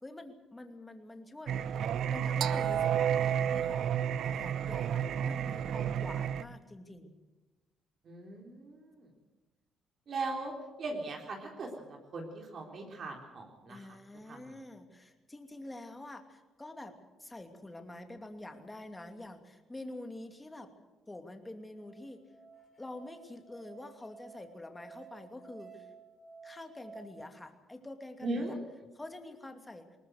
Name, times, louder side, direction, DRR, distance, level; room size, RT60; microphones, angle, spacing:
voice 1, 0.0-1.6 2.1-7.2 13.7-16.9 17.2-20.7 21.1-22.2 22.8-25.9 26.4-28.6 29.0-29.9, left 1 dB, 15° left, 6 dB, 2.6 m, -47 dB
Singing, 1.5-6.4, right 9 dB, 65° right, 0.8 m, -31 dB
voice 2, 8.0-9.1 10.1-13.9 14.3-14.4 28.2-28.6, right 2 dB, 50° right, 1 dB, 3.7 m, -39 dB
Musical instrument, 21.3-27.0, right 5 dB, 40° left, 5.0 m, -54 dB
20.5 x 19.0 x 8.0 m, 1.1 s
cardioid pair, 105°, 0 cm